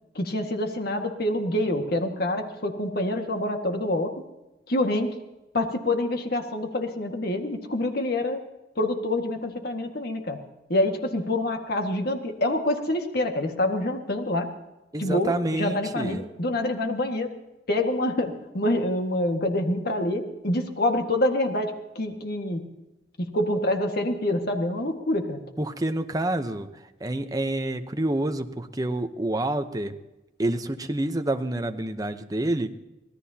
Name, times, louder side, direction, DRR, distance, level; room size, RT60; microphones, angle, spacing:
voice 1, 0.2-4.1 4.7-5.2 5.5-8.4 8.8-10.4 10.7-14.5 15.0-17.3 17.7-22.6 23.2-25.4, left 1 dB, 60° left, 4 dB, 1.8 m, -26 dB
voice 2, 14.9-16.2 25.6-26.7 27.0-30.0 30.4-32.7, right 1 dB, 20° right, 7 dB, 0.9 m, -28 dB
25.0 x 17.5 x 2.9 m, 1.0 s
head